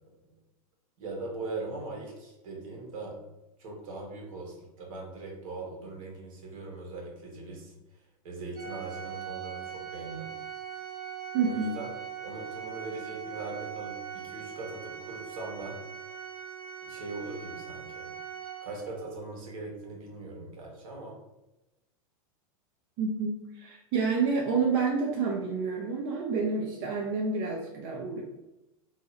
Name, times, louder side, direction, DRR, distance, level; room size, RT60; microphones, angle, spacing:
voice 1, 1.0-3.2 3.6-7.7 8.2-10.3 11.4-11.9 12.2-15.8 16.9-18.1 18.6-21.2, right 3 dB, 65° right, -1 dB, 1.2 m, -40 dB
Organ, 8.5-19.1, right 9 dB, 80° right, 0.9 m, -41 dB
voice 2, 11.3-11.7 23.0-28.2, right 4 dB, 40° right, -2 dB, 0.5 m, -29 dB
2.7 x 2.4 x 4.0 m, 0.94 s
supercardioid pair, 155°, 18 cm